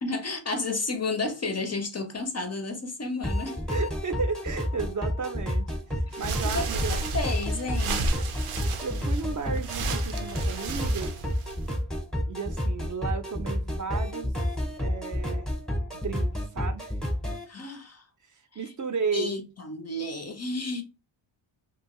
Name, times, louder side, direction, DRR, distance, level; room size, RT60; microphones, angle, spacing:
voice 1, 0.0-3.6 6.5-8.1 17.5-18.0 18.5-18.6 19.1-20.8, left 3 dB, 35° left, 0.4 m, -32 dB
sound 1, 3.2-17.4, left 1 dB, ahead, 0.7 m, -30 dB
voice 2, 3.7-7.1 8.8-11.1 12.3-14.3 14.6-15.5 15.9-16.9 18.3-19.4, right 5 dB, 40° right, 0.5 m, -34 dB
sound 2, 6.1-11.8, right 3 dB, 90° right, 0.7 m, -33 dB
2.7 x 2.7 x 2.9 m
wide cardioid pair, 120°, 49 cm